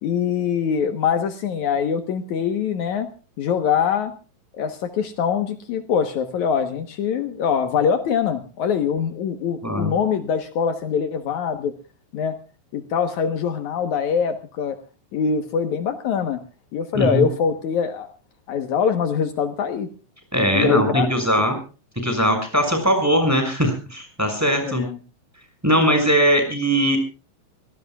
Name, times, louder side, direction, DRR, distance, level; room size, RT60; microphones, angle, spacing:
voice 1, 0.0-3.1 3.4-4.1 4.6-11.7 12.1-12.4 12.7-14.8 15.1-16.4 16.7-18.1 18.5-19.9 20.5-21.1 24.6-25.0, left 7 dB, 85° left, 8 dB, 1.6 m, -23 dB
voice 2, 9.6-9.9 16.9-17.3 20.3-21.5 22.0-24.8 25.6-27.0, equal, 5° right, 5 dB, 5.7 m, -20 dB
26.0 x 18.0 x 2.4 m, 0.36 s
omnidirectional pair, 5.4 m